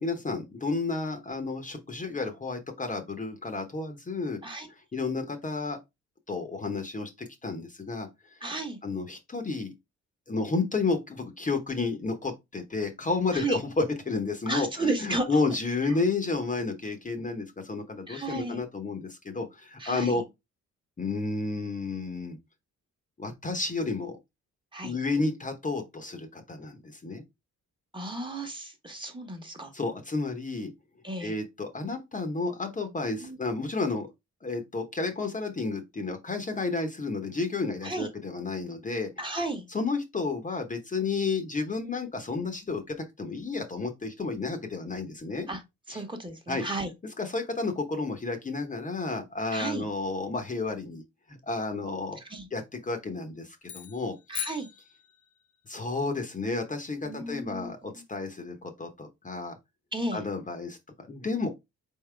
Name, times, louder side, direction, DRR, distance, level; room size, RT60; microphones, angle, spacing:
voice 1, 0.0-4.4 4.9-5.8 6.3-8.1 8.8-9.7 10.3-20.2 21.0-22.4 23.2-24.2 24.8-27.2 29.7-30.7 31.2-34.1 34.4-39.1 39.7-45.5 45.9-46.0 46.5-46.6 47.0-51.0 51.3-52.2 52.5-54.1 55.7-59.5 60.1-61.5, left 3 dB, 25° left, 1.0 m, -31 dB
voice 2, 8.4-8.8 13.3-13.6 14.5-15.4 18.1-18.6 19.8-20.2 24.7-25.0 27.9-29.7 31.0-31.3 33.2-33.4 37.8-38.1 39.2-39.7 45.5-45.6 45.9-46.9 49.5-49.9 52.3-52.5 54.3-54.7 57.0-57.7 59.9-60.2, right 2 dB, 15° right, 1.2 m, -33 dB
sound 1, 53.6-55.6, left 11 dB, 65° left, 1.2 m, -40 dB
4.1 x 3.7 x 3.3 m
cardioid pair, 90°, 30 cm